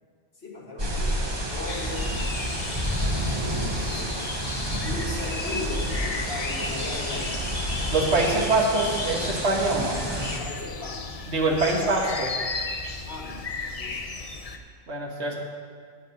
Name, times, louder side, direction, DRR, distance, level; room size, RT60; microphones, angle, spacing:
voice 1, 0.4-2.2 3.9-4.3 4.8-7.4 10.4-11.2 13.0-13.5 13.7-14.4, left 2 dB, 60° left, -3 dB, 2.2 m, -37 dB
sound 1, 0.8-10.4, right 1 dB, 25° right, 1.0 m, -29 dB
sound 2, 1.7-14.6, left 4 dB, 40° left, 0.6 m, -35 dB
voice 2, 7.9-10.0 11.3-12.3 14.9-15.4, right 2 dB, 65° right, -1 dB, 1.6 m, -24 dB
8.7 x 8.4 x 5.7 m, 2.1 s
omnidirectional pair, 1.2 m